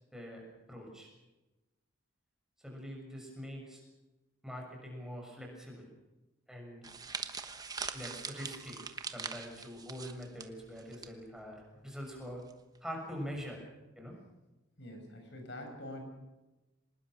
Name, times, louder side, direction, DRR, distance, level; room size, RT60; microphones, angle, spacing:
voice 1, 0.1-0.4 0.7-1.1 2.6-3.8 4.4-5.9 6.5-6.8 7.9-8.8 9.1-12.4 12.8-13.6 14.0-14.2, equal, 5° right, 0 dB, 6.4 m, -44 dB
sound 1, 6.8-11.1 11.4-11.6 12.5-12.8, right 5 dB, 20° right, 1.2 m, -42 dB
voice 2, 14.8-16.0, left 1 dB, 55° left, 4 dB, 6.6 m, -45 dB
25.5 x 20.0 x 6.4 m, 1.1 s
head